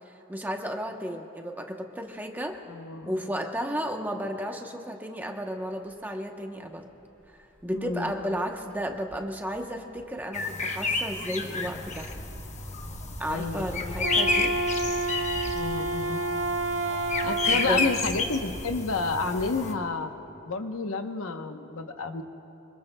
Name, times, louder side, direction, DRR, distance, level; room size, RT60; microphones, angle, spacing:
voice 1, 0.3-2.6 3.1-6.9 7.6-12.1 13.2-14.5 17.5-17.8, equal, 10° right, 3 dB, 0.9 m, -33 dB
sound 1, 2.5-2.6 5.8-6.0 7.2-19.6, equal, 10° left, 2.9 m, -44 dB
voice 2, 2.7-3.2 7.7-8.3 13.3-13.9 15.5-16.4 17.2-22.2, left 3 dB, 85° left, 6 dB, 1.0 m, -31 dB
sound 2, 10.3-19.7, left 3 dB, 35° left, 1.0 m, -31 dB
Wind instrument woodwind instrument, 13.9-18.1, right 3 dB, 70° right, 0.6 m, -29 dB
25.0 x 25.0 x 2.3 m, 2.9 s
head